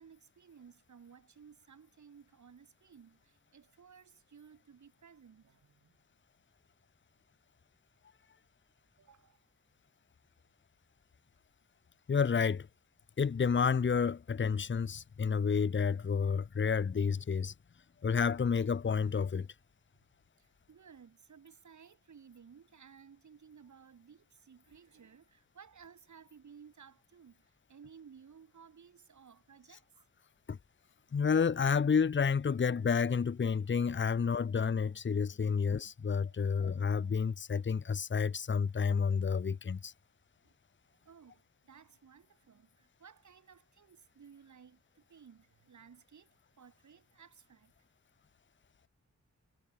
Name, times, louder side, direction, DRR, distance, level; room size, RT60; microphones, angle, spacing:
voice 1, 0.0-6.0 9.0-9.5 19.9-20.1 20.4-29.9 36.3-36.4 40.4-40.5 41.0-47.7, right 7 dB, 75° right, 7.5 m, -58 dB
voice 2, 12.1-12.7 13.2-17.5 18.0-19.5 30.5-30.6 31.1-39.9, left 6 dB, 40° left, 1.0 m, -30 dB
wide cardioid pair, 110°, 29 cm